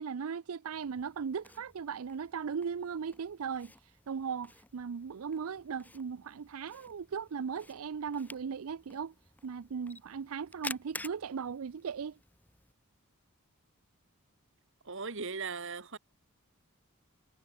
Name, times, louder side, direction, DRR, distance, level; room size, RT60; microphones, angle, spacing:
voice 1, 0.0-9.1 9.4-12.2, right 6 dB, 80° right, 0.5 m, -38 dB
Camera, 0.7-12.7, left 2 dB, 10° left, 1.6 m, -51 dB
voice 2, 14.9-16.0, right 4 dB, 60° right, 1.8 m, -38 dB
head